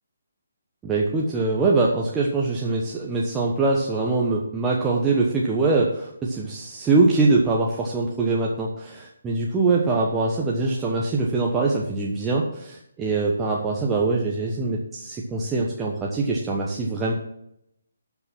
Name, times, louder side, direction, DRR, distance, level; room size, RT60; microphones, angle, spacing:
voice 1, 0.8-17.1, right 3 dB, 10° right, -3 dB, 1.1 m, -23 dB
12.0 x 5.8 x 6.0 m, 0.76 s
figure-of-eight pair, 140°, 0 cm